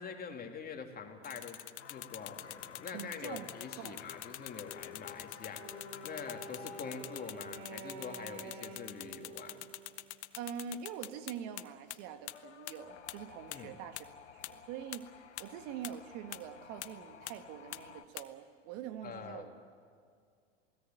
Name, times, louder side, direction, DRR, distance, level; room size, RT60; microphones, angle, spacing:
voice 1, 0.0-1.6 1.9-9.6 13.5-13.8 19.0-19.4, left 5 dB, 25° left, 3 dB, 3.3 m, -45 dB
sound 1, 1.2-11.6 11.9-12.0 12.3-12.4 12.7-12.8 13.1-13.2 13.5-13.6 14.0-14.1 14.4-14.5 14.9-15.0 15.4-15.5 15.8-15.9 16.3-16.4 16.8-16.9 17.3-17.4 17.7-17.8 18.2-18.3, left 16 dB, 70° left, 1.2 m, -43 dB
sound 2, 1.8-8.0 12.3-18.1, left 8 dB, 85° left, 1.4 m, -53 dB
voice 2, 2.9-3.5 3.8-4.0 10.4-14.1 14.3-15.1 15.4-19.5, right 9 dB, 55° right, 9 dB, 1.7 m, -44 dB
Wind instrument woodwind instrument, 5.6-10.6, right 5 dB, 70° right, 3.0 m, -49 dB
28.0 x 18.0 x 9.2 m, 2.2 s
hypercardioid pair, 90°, 34 cm